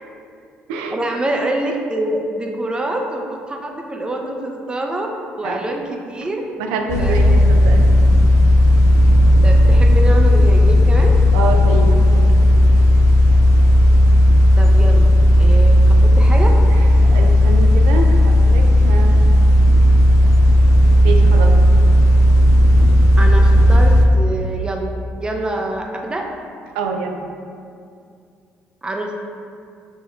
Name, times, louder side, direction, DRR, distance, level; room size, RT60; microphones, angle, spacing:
voice 1, 0.9-5.1 5.4-6.4 7.0-7.4 9.4-11.1 14.6-15.1 15.3-16.5 23.2-24.9 25.2-26.2 28.8-29.1, right 1 dB, 15° right, 1 dB, 0.6 m, -25 dB
voice 2, 6.6-7.9 11.3-12.6 17.0-19.2 21.0-21.5 26.7-27.2, right 4 dB, 85° right, 3 dB, 0.4 m, -25 dB
sound 1, 6.9-24.1, equal, 65° left, 0.5 m, -12 dB
6.4 x 2.9 x 2.4 m, 2.4 s
hypercardioid pair, 55°, 5 cm